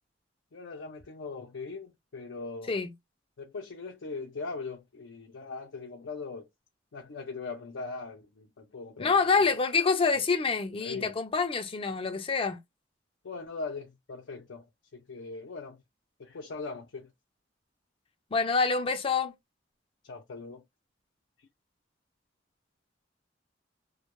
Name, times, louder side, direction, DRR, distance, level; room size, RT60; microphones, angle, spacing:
voice 1, 0.5-2.8 3.4-6.5 6.9-9.4 10.1-10.2 10.8-11.2 13.2-15.8 16.2-17.1 20.0-20.6 21.4-21.5, left 4 dB, 85° left, 0.5 m, -40 dB
voice 2, 9.0-12.6 18.3-19.3, left 4 dB, 30° left, 0.4 m, -26 dB
2.1 x 2.1 x 2.9 m
head